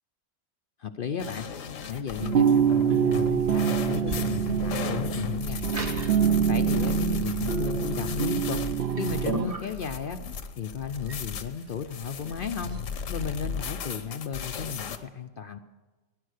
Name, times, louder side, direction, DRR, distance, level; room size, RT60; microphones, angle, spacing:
voice 1, 0.8-1.5 1.8-5.6 6.5-8.6 9.0-10.2 10.6-12.8 13.1-15.6, left 6 dB, 55° left, 8 dB, 0.7 m, -34 dB
sound 1, 1.2-15.0, left 6 dB, 85° left, 1.3 m, -36 dB
sound 2, 2.2-9.5, right 8 dB, 60° right, 0.9 m, -25 dB
sound 3, 2.7-12.9, right 2 dB, 30° right, 1.3 m, -39 dB
17.5 x 10.0 x 6.5 m, 1.2 s
omnidirectional pair, 1.3 m